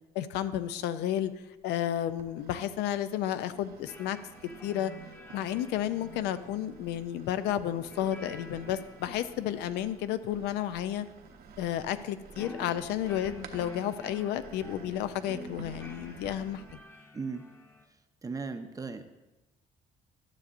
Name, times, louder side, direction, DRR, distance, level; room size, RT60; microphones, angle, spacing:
voice 1, 0.1-1.3 1.6-4.2 4.6-4.9 5.3-11.1 11.6-16.6, left 11 dB, 85° left, 12 dB, 0.5 m, -32 dB
sound 1, 1.0-1.6 2.2-16.8, right 6 dB, 65° right, 0.9 m, -52 dB
sound 2, 3.9-17.8, left 1 dB, 15° left, 0.9 m, -50 dB
voice 2, 17.1-17.4 18.2-19.1, right 4 dB, 20° right, 8 dB, 0.6 m, -37 dB
12.5 x 6.6 x 2.5 m, 1.1 s
cardioid pair, 110°, 17 cm